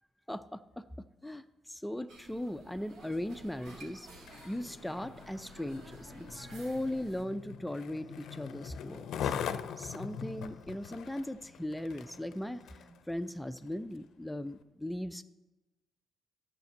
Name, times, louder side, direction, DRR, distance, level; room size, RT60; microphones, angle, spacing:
voice 1, 0.3-0.9 1.2-4.1 4.4-9.3 9.8-12.6 13.1-15.2, left 1 dB, 5° left, 11 dB, 0.4 m, -38 dB
sound 1, 2.1-7.2, right 2 dB, 75° right, 3.0 m, -52 dB
Skateboard, 4.1-13.0 13.6-13.7, left 8 dB, 75° left, 0.6 m, -42 dB
Telephone, 7.9-9.0 9.9-11.0 11.9-13.0, right 2 dB, 15° right, 2.2 m, -60 dB
10.5 x 5.9 x 8.1 m, 1.0 s
cardioid pair, 90°, 0 cm